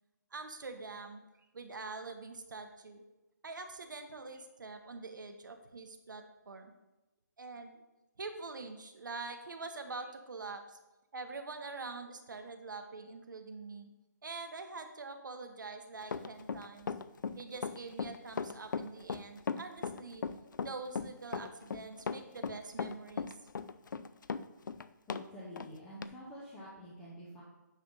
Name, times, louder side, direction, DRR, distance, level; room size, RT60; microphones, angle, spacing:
voice 1, 0.3-1.2 1.5-3.0 3.4-6.7 7.4-7.7 8.2-10.8 11.1-13.9 14.2-16.9 17.4-20.2 20.6-23.3, right 3 dB, 80° right, 6 dB, 1.1 m, -45 dB
Run, 16.0-25.3 25.6-25.7 26.0-26.1, left 5 dB, 80° left, 0.4 m, -37 dB
voice 2, 25.1-27.4, equal, 5° left, -8 dB, 0.6 m, -48 dB
9.4 x 3.4 x 5.4 m, 1.0 s
hypercardioid pair, 175°, 10 cm